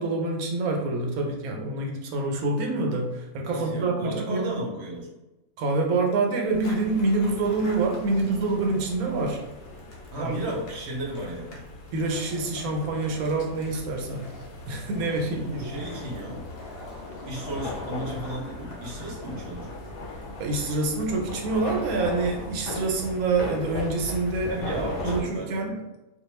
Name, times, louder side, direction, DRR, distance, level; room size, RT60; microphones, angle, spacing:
voice 1, 0.0-4.5 5.6-9.4 10.2-10.3 11.9-14.3 14.7-15.7 20.4-25.8, right 3 dB, 85° right, 1 dB, 1.1 m, -26 dB
voice 2, 3.5-5.1 10.1-11.6 15.3-16.5 17.3-19.7 24.5-25.8, right 1 dB, 60° right, -2 dB, 0.8 m, -34 dB
sound 1, 6.5-25.2, left 2 dB, 80° left, 1.1 m, -39 dB
Skateboard, 6.5-25.1, left 2 dB, 60° left, 0.7 m, -46 dB
2.3 x 2.3 x 3.0 m, 1.0 s
omnidirectional pair, 1.5 m